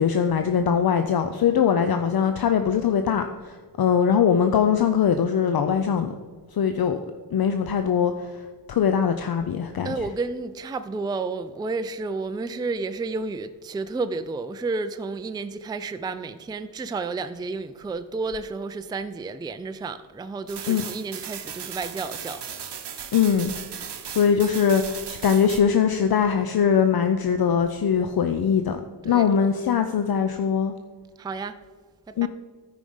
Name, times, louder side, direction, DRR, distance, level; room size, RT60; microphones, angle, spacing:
voice 1, 0.0-6.1 6.5-7.0 7.3-8.3 8.7-9.9 20.7-20.8 23.1-23.5 24.1-28.8 29.0-30.7 32.2-32.3, left 7 dB, 60° left, 0.6 m, -21 dB
voice 2, 9.8-22.7 29.0-29.3 31.2-31.5 32.1-32.3, right 3 dB, 10° right, 0.3 m, -31 dB
sound 1, 20.5-25.6, right 8 dB, 80° right, 0.8 m, -37 dB
13.0 x 5.1 x 5.4 m
wide cardioid pair, 120°, 41 cm